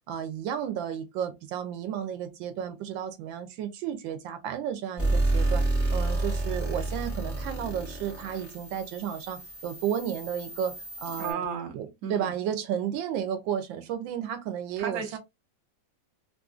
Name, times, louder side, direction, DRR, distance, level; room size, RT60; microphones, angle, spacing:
voice 1, 0.1-5.6 5.9-11.4 11.7-15.2, right 9 dB, 85° right, 1.4 m, -33 dB
sound 1, 5.0-11.3, right 2 dB, 10° right, 0.9 m, -30 dB
voice 2, 11.2-12.3 14.8-15.2, right 6 dB, 60° right, 1.1 m, -34 dB
3.4 x 2.5 x 2.4 m
omnidirectional pair, 2.0 m